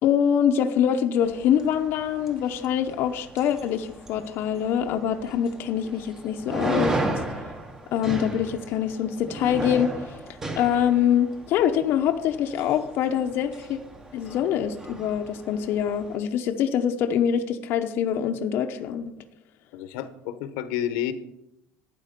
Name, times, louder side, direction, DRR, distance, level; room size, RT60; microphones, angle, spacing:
voice 1, 0.0-7.0 7.9-9.9 10.6-13.8 14.1-19.1, left 9 dB, 45° left, 5 dB, 0.8 m, -24 dB
sound 1, 1.2-16.2, right 2 dB, 10° right, 0.9 m, -35 dB
voice 2, 19.7-21.1, left 11 dB, 80° left, 11 dB, 1.0 m, -30 dB
12.5 x 9.1 x 5.2 m, 0.86 s
cardioid pair, 175°, 5 cm